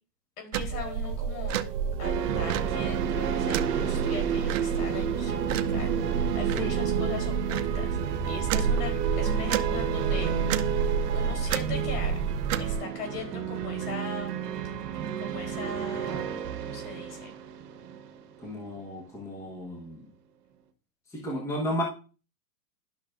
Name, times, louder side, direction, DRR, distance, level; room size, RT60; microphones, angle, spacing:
voice 1, 0.4-1.6 2.0-8.0 8.2-10.3 11.1-12.1 12.6-14.3 15.2-17.3, left 5 dB, 65° left, 3 dB, 3.8 m, -40 dB
sound 1, 0.5-12.8, right 6 dB, 50° right, 0.6 m, -30 dB
sound 2, 0.7-11.5 12.3-12.4, right 10 dB, 85° right, 1.0 m, -35 dB
sound 3, 2.0-18.8, right 7 dB, 65° right, 1.5 m, -32 dB
voice 2, 6.4-6.7 18.4-20.1 21.1-21.8, equal, 5° left, -3 dB, 1.1 m, -33 dB
11.0 x 6.1 x 2.6 m, 0.36 s
hypercardioid pair, 150°, 50 cm